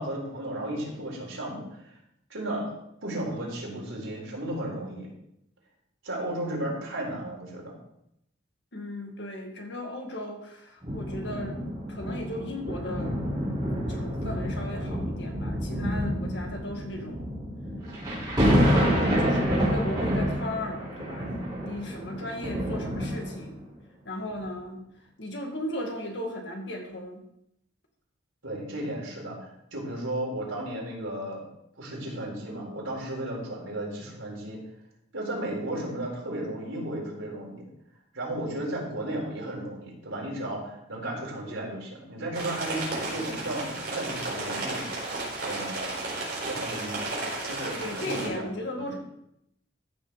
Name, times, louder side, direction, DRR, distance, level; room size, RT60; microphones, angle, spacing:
voice 1, 0.0-2.0 2.3-2.7 3.0-5.1 6.0-7.8 28.4-31.5 31.8-34.6 35.1-37.6 38.1-44.8 45.5-45.9 46.4-47.0 47.4-48.5 48.8-48.9, right 1 dB, 90° right, -3 dB, 4.2 m, -34 dB
voice 2, 8.7-11.6 11.9-13.2 13.9-17.3 18.6-21.3 21.6-23.7 24.1-24.8 25.2-27.2 47.8-49.2, left 1 dB, 60° left, 2 dB, 2.0 m, -36 dB
sound 1, 10.8-23.6 24.3-24.4, equal, 20° right, 4.3 m, -28 dB
sound 2, 42.3-48.3, right 2 dB, 55° right, 4.2 m, -33 dB
14.5 x 6.7 x 4.0 m, 0.78 s
head